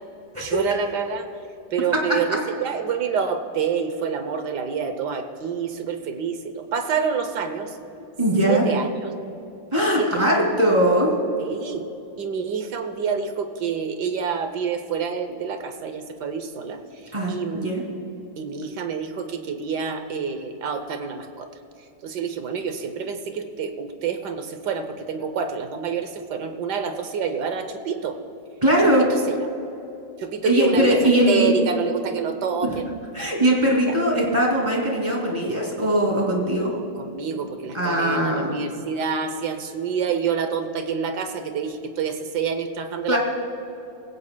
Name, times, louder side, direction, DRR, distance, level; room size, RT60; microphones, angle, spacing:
voice 1, 0.4-1.3 1.7-7.8 8.4-8.9 10.0-10.4 11.4-11.9 12.2-16.8 17.3-17.8 18.4-21.5 22.0-28.2 28.8-29.4 30.2-31.0 31.3-32.9 36.6-43.2, right 6 dB, 65° right, 8 dB, 1.4 m, -27 dB
voice 2, 8.2-8.7 9.7-11.1 17.1-17.8 28.6-29.0 30.4-31.5 32.6-32.7 33.1-36.7 37.7-38.6 43.1-43.2, right 1 dB, 15° right, -2 dB, 2.6 m, -20 dB
20.5 x 17.0 x 2.2 m, 2.8 s
omnidirectional pair, 2.1 m